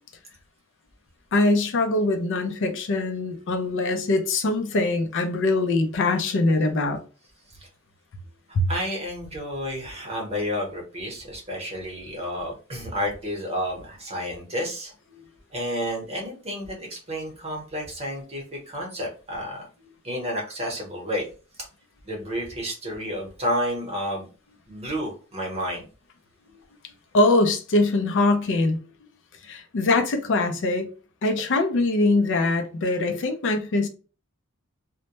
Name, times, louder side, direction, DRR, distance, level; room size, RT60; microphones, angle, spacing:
voice 1, 1.3-7.0 8.5-8.6 27.1-28.8 29.4-30.9 31.2-33.9, left 2 dB, 60° left, 0.4 m, -22 dB
voice 2, 8.7-14.9 15.5-19.6 20.0-21.3 22.0-24.3 24.7-25.8, equal, 30° right, 0.8 m, -31 dB
2.1 x 2.1 x 2.8 m
head